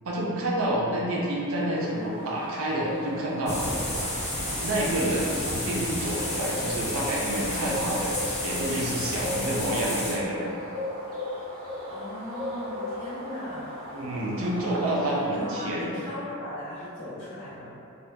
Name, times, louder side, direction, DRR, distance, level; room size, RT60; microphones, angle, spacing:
voice 1, 0.0-3.6 4.6-10.5 13.9-15.9, right 1 dB, 75° right, -4 dB, 0.5 m, -28 dB
Bird, 1.1-15.8, left 1 dB, 40° right, 0.7 m, -37 dB
sound 1, 3.5-10.1, left 1 dB, 30° left, 0.7 m, -31 dB
voice 2, 11.9-13.7 15.1-17.7, left 1 dB, 60° left, -13 dB, 1.0 m, -38 dB
2.7 x 2.2 x 2.2 m, 2.6 s
head